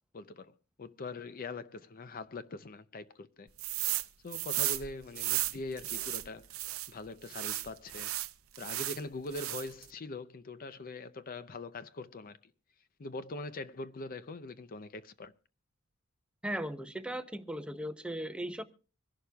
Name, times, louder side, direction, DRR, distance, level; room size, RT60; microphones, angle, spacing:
voice 1, 0.1-3.5 4.2-6.5 6.9-8.1 8.6-12.4 13.0-15.3, left 2 dB, 40° left, 0.5 m, -42 dB
sound 1, 3.6-4.1 4.3-6.9 7.3-9.0 9.3-9.8, right 16 dB, 70° right, 0.6 m, -34 dB
voice 2, 16.4-18.6, right 1 dB, 5° right, 0.6 m, -37 dB
25.0 x 11.5 x 2.3 m
head